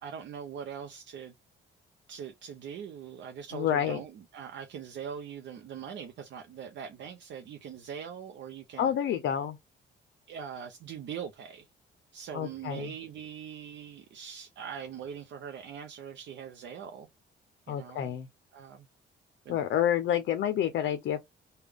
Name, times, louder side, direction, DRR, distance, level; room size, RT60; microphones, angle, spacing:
voice 1, 0.0-1.3 2.1-8.9 10.3-11.7 12.1-17.1 17.7-18.2 18.5-18.9 19.5-19.6, right 7 dB, 65° right, 0.6 m, -42 dB
voice 2, 3.5-4.0 8.8-9.6 12.3-12.9 17.7-18.3 19.5-21.2, left 10 dB, 70° left, 0.5 m, -28 dB
3.4 x 2.2 x 3.3 m
cardioid pair, 90°, 20 cm